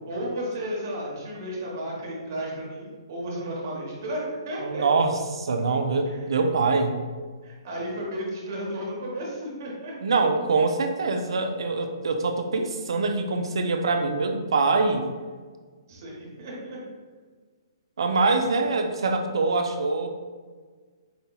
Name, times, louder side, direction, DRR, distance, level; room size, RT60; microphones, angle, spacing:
voice 1, 0.1-4.8 6.1-6.2 7.4-9.9 15.9-16.8, equal, 40° right, -4 dB, 1.0 m, -33 dB
voice 2, 4.6-7.0 10.0-15.1 18.0-20.1, right 3 dB, 70° right, 5 dB, 0.4 m, -24 dB
5.2 x 2.8 x 2.3 m, 1.5 s
hypercardioid pair, 175°, 3 cm